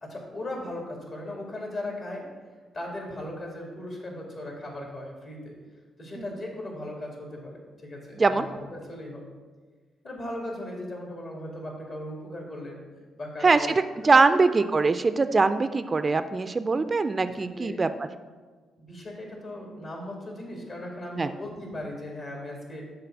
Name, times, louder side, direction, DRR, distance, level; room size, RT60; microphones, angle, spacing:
voice 1, 0.0-2.3 2.7-5.6 6.0-9.2 10.0-12.8 13.2-13.7 14.3-14.4 17.3-17.8 18.8-22.9, left 1 dB, 55° left, -1 dB, 2.2 m, -37 dB
voice 2, 14.0-17.9 21.2-21.3, right 4 dB, 35° right, 11 dB, 0.3 m, -22 dB
6.7 x 3.4 x 6.0 m, 1.4 s
supercardioid pair, 55°, 0 cm